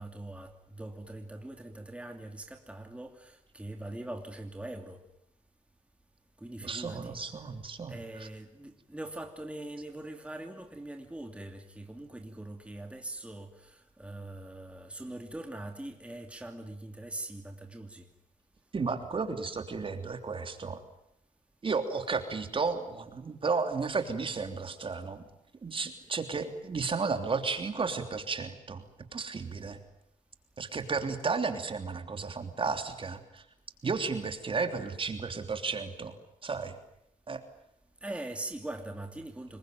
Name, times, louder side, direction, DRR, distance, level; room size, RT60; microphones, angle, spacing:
voice 1, 0.0-5.0 6.4-7.2 7.9-18.1 38.0-39.6, right 1 dB, 10° right, 2.8 m, -42 dB
voice 2, 6.6-8.3 18.7-20.8 21.6-25.2 25.6-28.8 29.1-29.8 30.6-33.4 33.8-36.1 36.4-36.8 37.3-37.4, right 4 dB, 40° right, 3.2 m, -33 dB
26.5 x 22.5 x 9.3 m
cardioid pair, 90°, 14 cm